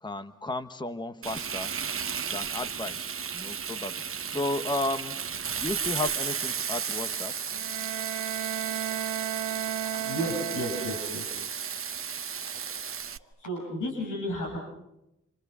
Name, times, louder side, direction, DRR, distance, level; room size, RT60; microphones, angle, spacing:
voice 1, 0.0-1.7 2.3-5.2 5.5-7.5, left 2 dB, 15° left, 10 dB, 1.1 m, -34 dB
Frying (food), 1.2-13.2, right 7 dB, 45° right, 0.9 m, -34 dB
Bowed string instrument, 7.5-11.5, right 11 dB, 85° right, 1.0 m, -34 dB
voice 2, 9.9-11.3 12.5-12.8 13.0-14.6, equal, 70° left, -1 dB, 7.2 m, -33 dB
28.5 x 27.5 x 6.8 m, 0.88 s
wide cardioid pair, 125°, 32 cm